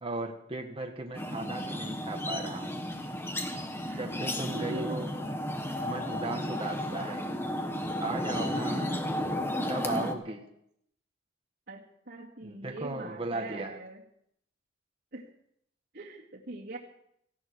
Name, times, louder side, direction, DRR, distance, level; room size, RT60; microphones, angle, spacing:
voice 1, 0.0-2.7 4.0-5.1 5.6-7.3 8.0-8.9 9.7-10.4 12.4-13.8, right 2 dB, 30° right, 3 dB, 1.6 m, -37 dB
sound 1, 1.2-10.1, left 1 dB, 15° left, 1.4 m, -33 dB
voice 2, 4.5-5.0 8.7-9.0 10.3-10.4 11.7-14.0 15.1-15.3 15.9-16.8, right 2 dB, 60° right, -4 dB, 2.2 m, -43 dB
18.0 x 15.5 x 4.7 m, 0.73 s
head